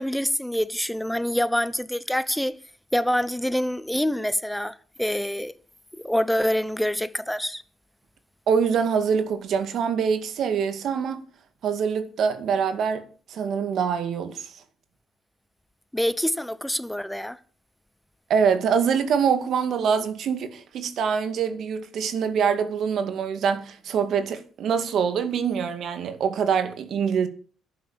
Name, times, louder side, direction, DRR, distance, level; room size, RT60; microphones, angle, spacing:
voice 1, 0.0-2.5 2.9-5.5 6.0-7.6 15.9-17.4, equal, 5° left, 0.9 m, -26 dB
voice 2, 8.5-11.2 11.6-13.0 13.3-14.5 18.3-27.3, right 6 dB, 60° right, 2.2 m, -24 dB
11.5 x 9.4 x 7.5 m
cardioid pair, 125°, 0 cm